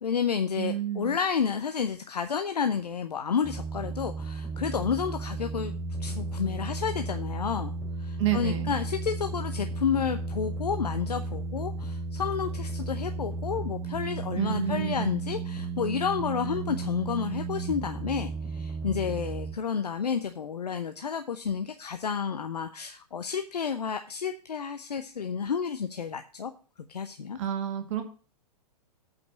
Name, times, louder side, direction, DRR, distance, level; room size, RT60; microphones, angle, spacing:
voice 1, 0.0-5.7 6.0-7.7 8.0-26.5 26.9-27.4, left 7 dB, 75° left, 8 dB, 0.8 m, -31 dB
voice 2, 0.6-1.1 8.2-8.8 14.4-15.2 27.4-28.0, right 9 dB, 45° right, 6 dB, 1.7 m, -29 dB
sound 1, 3.4-19.5, right 3 dB, 5° left, 3.3 m, -34 dB
8.4 x 5.3 x 7.4 m, 0.38 s
figure-of-eight pair, 110°, 21 cm